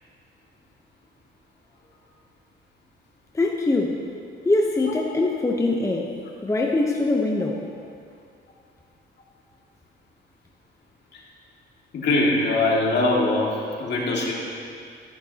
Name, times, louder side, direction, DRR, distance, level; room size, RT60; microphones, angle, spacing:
voice 1, 3.3-4.0 4.4-6.1 6.4-7.6, left 2 dB, 15° left, 0 dB, 0.8 m, -23 dB
voice 2, 11.9-14.5, left 2 dB, 60° left, -3 dB, 2.3 m, -22 dB
13.5 x 10.5 x 2.9 m, 2.4 s
cardioid pair, 90°, 20 cm